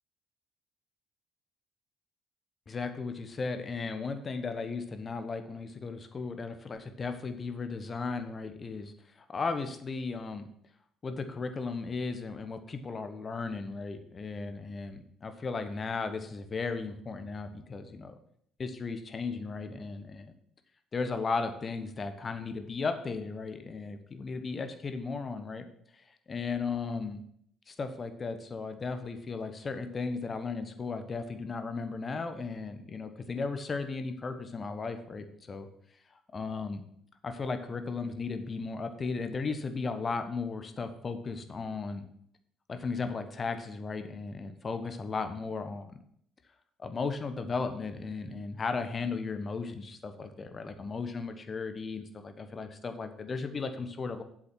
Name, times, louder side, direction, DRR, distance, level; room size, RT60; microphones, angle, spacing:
voice 1, 2.7-8.9 9.3-10.5 11.0-18.2 18.6-20.3 20.9-25.7 26.3-27.2 27.7-35.7 36.3-36.8 37.2-42.0 42.7-46.0 46.8-54.2, left 4 dB, 35° left, 8 dB, 1.1 m, -35 dB
8.0 x 6.4 x 6.1 m, 0.66 s
figure-of-eight pair, 50°, 0 cm